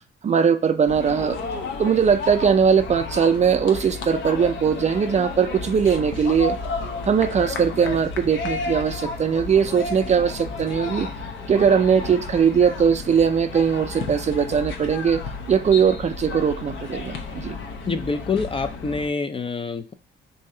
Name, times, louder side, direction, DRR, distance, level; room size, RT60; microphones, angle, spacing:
voice 1, 0.2-1.4 1.8-6.6 7.1-11.1 11.5-15.2 15.5-17.6, right 7 dB, 35° right, 9 dB, 0.4 m, -20 dB
sound 1, 0.9-19.1, left 4 dB, 70° left, 0.7 m, -32 dB
voice 2, 17.9-19.9, left 4 dB, 25° left, 9 dB, 0.4 m, -26 dB
3.1 x 2.7 x 3.7 m, 0.32 s
cardioid pair, 90°, 20 cm